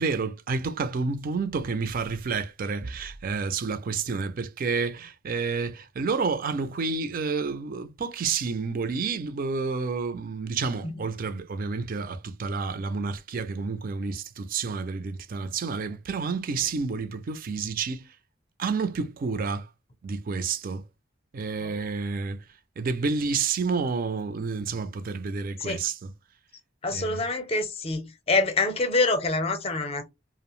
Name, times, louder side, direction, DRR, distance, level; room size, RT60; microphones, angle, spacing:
voice 1, 0.0-18.1 18.6-19.7 20.0-20.8 21.3-22.4 22.8-26.1 26.9-27.2, right 4 dB, 45° right, 0.4 m, -29 dB
voice 2, 26.8-30.1, left 3 dB, 30° left, 0.6 m, -26 dB
2.6 x 2.0 x 2.9 m
head